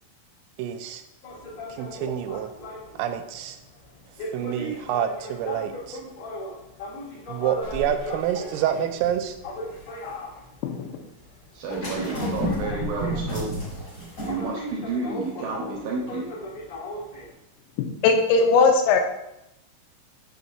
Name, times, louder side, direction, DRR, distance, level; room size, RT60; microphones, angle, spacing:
voice 1, 0.6-1.0 1.8-2.5 3.0-3.6 4.3-6.0 7.3-9.4, right 10 dB, 90° right, 8 dB, 3.3 m, -27 dB
sound 1, 1.2-17.3, left 1 dB, 45° left, 2.8 m, -38 dB
sound 2, 7.6-10.1 11.7-14.5 14.8-14.9, equal, 65° left, 0.8 m, -32 dB
voice 2, 11.5-13.9 14.2-16.3, right 3 dB, 70° right, -2 dB, 2.4 m, -31 dB
voice 3, 18.0-19.0, left 4 dB, 85° left, 4 dB, 3.5 m, -18 dB
8.1 x 6.7 x 2.7 m, 0.83 s
omnidirectional pair, 5.8 m